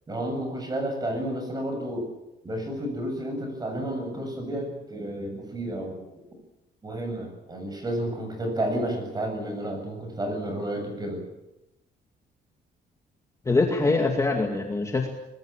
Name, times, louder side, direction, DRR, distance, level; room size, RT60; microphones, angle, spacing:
voice 1, 0.1-2.1 2.4-6.1 6.8-11.2, right 1 dB, 20° right, 4 dB, 7.8 m, -31 dB
voice 2, 13.5-15.1, left 3 dB, 15° left, 2 dB, 2.2 m, -23 dB
24.5 x 20.5 x 8.9 m, 0.93 s
cardioid pair, 180°, 19 cm